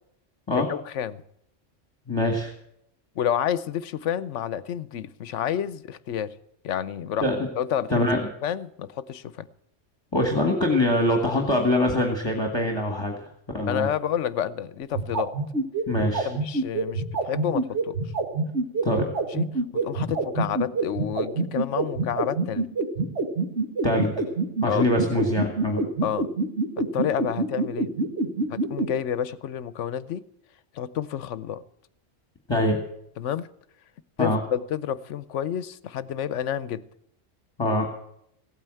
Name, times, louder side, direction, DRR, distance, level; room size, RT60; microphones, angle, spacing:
voice 1, 0.5-1.2 3.2-6.3 6.6-7.2 7.6-8.1 8.4-9.5 13.7-15.3 16.2-18.0 19.3-19.5 19.7-22.7 24.6-24.9 26.0-26.3 26.8-27.9 28.5-30.3 30.7-31.6 33.2-33.5 34.2-36.9, left 9 dB, 80° left, 17 dB, 1.0 m, -29 dB
voice 2, 2.1-2.5 7.2-7.4 7.9-8.3 10.1-13.3 13.5-13.9 15.9-16.3 18.8-19.1 23.8-24.3 24.6-25.8 32.5-32.8 34.2-34.4 37.6-37.9, left 1 dB, 20° left, 2 dB, 1.9 m, -23 dB
sound 1, 14.8-28.9, right 3 dB, 65° right, 2.1 m, -25 dB
16.0 x 9.1 x 7.7 m, 0.73 s
omnidirectional pair, 1.2 m